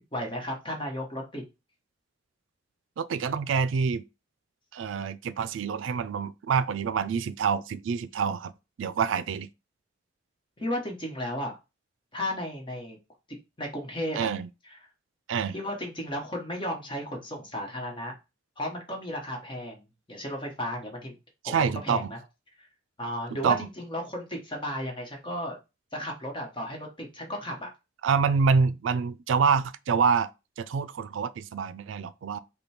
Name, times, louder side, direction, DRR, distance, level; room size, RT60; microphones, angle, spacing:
voice 1, 0.1-1.4 10.6-11.5 12.1-13.0 13.6-14.3 15.5-18.1 18.6-21.2 21.4-22.2 22.6-22.7 23.0-25.6 25.9-27.7, left 1 dB, 25° left, 1.2 m, -34 dB
voice 2, 3.0-4.0 4.7-8.5 8.8-9.5 14.1-14.5 15.3-15.5 21.4-22.1 23.4-23.7 28.0-30.3 30.6-32.4, right 5 dB, 80° right, 0.4 m, -26 dB
5.1 x 2.2 x 4.3 m
head